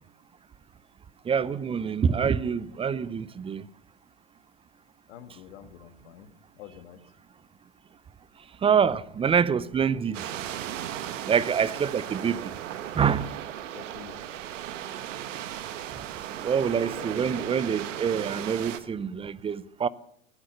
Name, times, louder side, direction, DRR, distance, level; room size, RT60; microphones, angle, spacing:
voice 1, 1.3-3.6 8.6-10.2 11.3-12.5 13.0-13.3 16.4-19.9, right 7 dB, 15° right, 0.5 m, -26 dB
voice 2, 5.1-6.3 6.6-7.0 13.7-14.1 16.9-17.5, left 10 dB, 65° left, 2.0 m, -47 dB
sound 1, 10.1-18.8, right 11 dB, 70° right, 1.4 m, -36 dB
18.0 x 10.0 x 6.8 m
hypercardioid pair, 95°, 39 cm